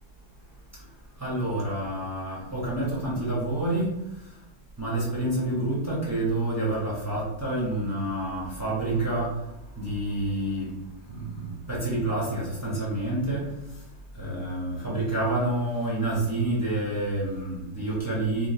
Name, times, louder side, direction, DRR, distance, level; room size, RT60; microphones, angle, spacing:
voice 1, 1.2-3.9 4.8-9.4 9.8-10.7 11.1-13.5 14.2-18.5, right 1 dB, 15° right, -7 dB, 0.7 m, -28 dB
3.7 x 2.8 x 2.8 m, 0.92 s
omnidirectional pair, 2.0 m